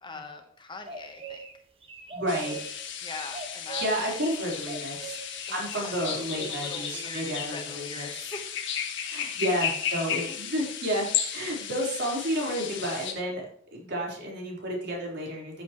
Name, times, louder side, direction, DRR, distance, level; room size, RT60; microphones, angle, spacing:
voice 1, 0.0-1.5 3.0-3.9 5.5-6.0 6.5-8.6 10.3-10.4, left 3 dB, 25° left, 5 dB, 1.2 m, -42 dB
sound 1, 0.8-1.5 1.8-2.8 3.1-4.1 4.6-5.2 6.0-6.6, right 4 dB, 30° right, 1.5 m, -41 dB
voice 2, 2.1-2.6 3.8-5.2 5.5-8.3 9.1-15.6, equal, 60° right, -2 dB, 4.3 m, -31 dB
sound 2, 2.3-13.1, left 8 dB, 65° left, 1.7 m, -34 dB
13.5 x 8.1 x 3.1 m, 0.64 s
head